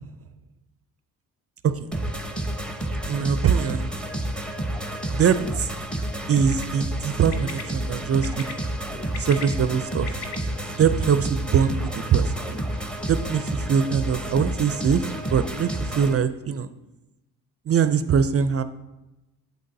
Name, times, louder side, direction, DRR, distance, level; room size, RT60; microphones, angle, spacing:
sound 1, 1.9-16.1, right 1 dB, ahead, 0.8 m, -30 dB
voice 1, 3.1-3.9 5.1-5.7 6.3-8.6 9.2-10.1 10.8-12.3 13.1-15.0 15.3-16.7 17.7-18.6, right 7 dB, 35° right, 11 dB, 0.4 m, -22 dB
Bird, 6.3-6.6 7.3-7.6 8.2-8.5 9.0-10.4, left 6 dB, 65° left, 1.0 m, -37 dB
8.2 x 8.1 x 2.7 m, 0.98 s
supercardioid pair, 65°, 42 cm